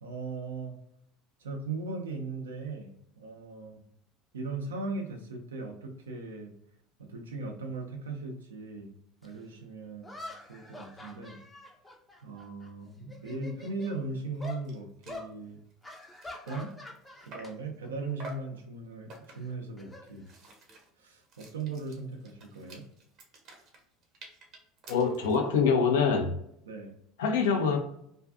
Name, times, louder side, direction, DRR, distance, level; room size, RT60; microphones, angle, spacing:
voice 1, 0.0-0.8 1.4-3.8 4.3-6.5 7.0-8.9 9.2-10.2 10.5-11.4 12.2-15.6 16.5-16.7 17.3-20.3 21.0-22.9 26.7-27.0, right 3 dB, 85° right, 2 dB, 0.5 m, -38 dB
sound 1, 9.2-9.3 10.0-12.7 13.0-14.0 14.4-14.6 15.1-15.3 15.8-17.5 17.8-18.1 19.3-20.7, left 2 dB, 15° left, 0.5 m, -45 dB
sound 2, 14.4-14.5 14.6-14.8 15.0-15.3 15.7-17.7 18.2-18.6 19.1-19.6 20.0-25.5, right 1 dB, 55° right, 0.8 m, -50 dB
voice 2, 24.9-26.3 27.2-27.8, left 5 dB, 75° left, 3 dB, 0.5 m, -25 dB
2.5 x 2.3 x 2.3 m, 0.71 s
hypercardioid pair, 75°, 0 cm